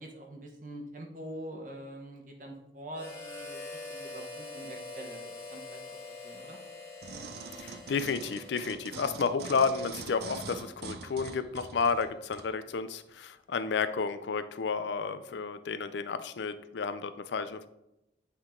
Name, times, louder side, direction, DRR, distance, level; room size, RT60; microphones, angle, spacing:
voice 1, 0.0-6.0 6.2-6.6 15.1-15.3, right 1 dB, 45° right, 1 dB, 1.0 m, -45 dB
Harmonica, 2.9-8.9, left 3 dB, 15° left, 1.6 m, -44 dB
sound 1, 7.0-12.5 13.1-13.2, right 5 dB, 65° right, 0.5 m, -44 dB
voice 2, 7.6-17.7, left 5 dB, 80° left, 12 dB, 0.4 m, -31 dB
8.5 x 3.8 x 3.7 m, 0.89 s
head